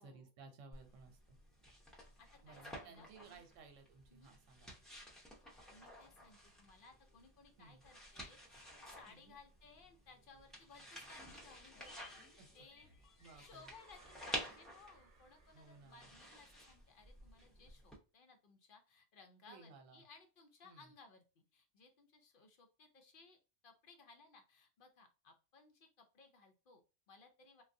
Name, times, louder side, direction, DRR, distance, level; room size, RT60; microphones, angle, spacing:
voice 1, 0.0-1.4 2.4-4.7 7.6-7.8 9.1-9.3 12.4-12.5 13.2-13.7 15.5-16.1 19.5-20.0 20.6-20.9, right 4 dB, 90° right, 5 dB, 1.0 m, -59 dB
sound 1, 0.7-18.0, equal, ahead, 0.5 m, -52 dB
voice 2, 2.2-3.4 4.1-4.3 5.6-12.2 12.5-12.9 13.4-27.6, left 4 dB, 60° left, 6 dB, 0.6 m, -62 dB
sound 2, 11.1-15.6 15.9-16.0, left 5 dB, 80° left, 0.9 m, -65 dB
sound 3, 13.5-16.6, right 5 dB, 60° right, 0.6 m, -67 dB
3.3 x 2.2 x 2.5 m, 0.31 s
omnidirectional pair, 1.3 m